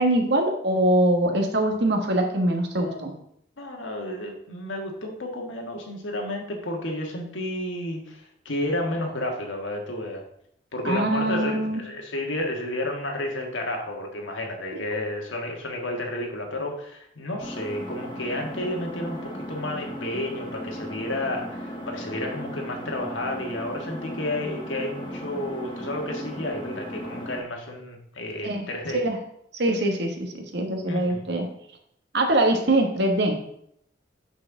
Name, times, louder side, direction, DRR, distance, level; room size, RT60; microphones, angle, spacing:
voice 1, 0.0-3.1 10.8-11.8 14.7-14.8 28.4-28.7 28.9-29.2 29.5-31.5 32.1-33.4, right 1 dB, 60° right, 3 dB, 1.3 m, -23 dB
voice 2, 3.6-10.2 10.7-19.2 19.5-29.0 30.9-31.3, left 1 dB, 90° left, 1 dB, 1.6 m, -31 dB
Engine, 17.4-27.4, equal, 25° left, 1.1 m, -36 dB
6.2 x 4.3 x 5.9 m, 0.71 s
head